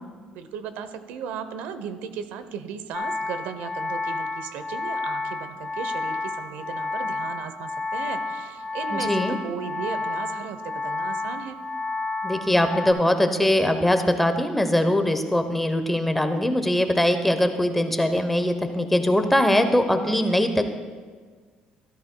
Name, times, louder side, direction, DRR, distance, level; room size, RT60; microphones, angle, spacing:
voice 1, 0.3-11.6, right 7 dB, 85° right, 11 dB, 0.7 m, -36 dB
sound 1, 2.9-12.9, left 3 dB, 35° left, 1.6 m, -30 dB
voice 2, 8.9-9.4 12.2-20.7, left 1 dB, 5° left, 7 dB, 0.7 m, -22 dB
13.5 x 12.5 x 2.2 m, 1.5 s
cardioid pair, 130°, 3 cm